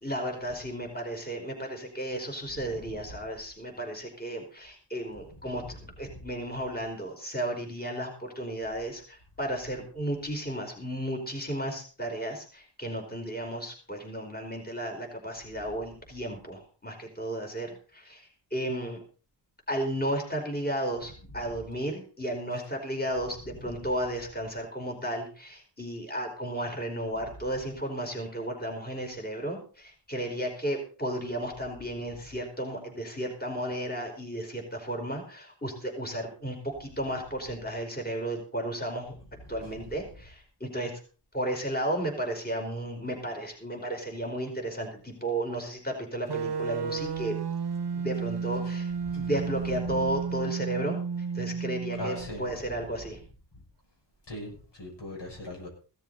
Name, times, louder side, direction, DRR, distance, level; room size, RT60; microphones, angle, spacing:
voice 1, 0.0-18.2 18.5-19.0 19.7-39.1 39.5-40.9 41.3-47.4 48.0-48.9 49.1-51.0 51.3-53.2, right 1 dB, 20° left, 1 dB, 4.8 m, -33 dB
voice 2, 2.5-3.0 5.3-5.8 6.1-6.2 21.4-21.6 23.5-23.7 39.5-40.0 48.6-48.7 49.1-49.4 49.7-50.1 52.0-52.9 53.5-53.6 54.3-55.7, left 1 dB, 80° left, 0 dB, 6.9 m, -42 dB
sound 1, 46.3-52.3, right 5 dB, 70° right, 0.9 m, -32 dB
16.5 x 13.5 x 4.1 m, 0.38 s
wide cardioid pair, 90°, 42 cm